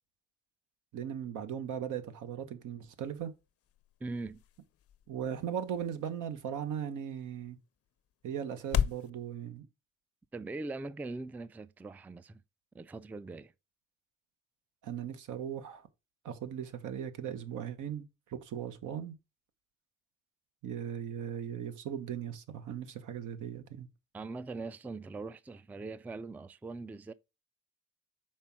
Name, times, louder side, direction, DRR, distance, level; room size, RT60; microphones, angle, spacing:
voice 1, 0.9-3.3 5.1-7.6 8.2-9.7 14.8-15.9 16.2-19.2 20.6-23.9, right 9 dB, 80° right, 1.1 m, -38 dB
sound 1, 2.8-9.1, left 9 dB, 50° left, 0.5 m, -39 dB
voice 2, 4.0-4.4 10.3-12.4 12.7-13.5 24.1-27.1, right 3 dB, 5° right, 0.3 m, -41 dB
5.5 x 4.4 x 5.9 m
cardioid pair, 90°, 30 cm